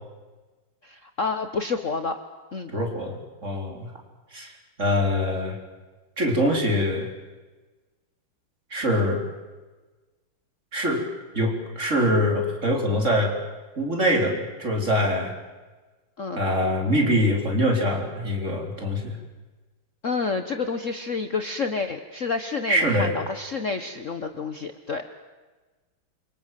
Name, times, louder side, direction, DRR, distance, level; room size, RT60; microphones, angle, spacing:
voice 1, 0.8-2.2 2.5-2.7 16.2-16.4 20.0-25.0, left 4 dB, 40° left, 8 dB, 1.4 m, -29 dB
voice 2, 2.7-3.9 4.3-4.5 4.8-5.6 6.2-7.1 8.7-9.2 10.7-11.0 11.3-13.3 13.8-15.3 16.4-19.2 22.7-23.2, equal, 35° right, 2 dB, 4.5 m, -24 dB
28.0 x 24.5 x 7.7 m, 1.2 s
omnidirectional pair, 2.3 m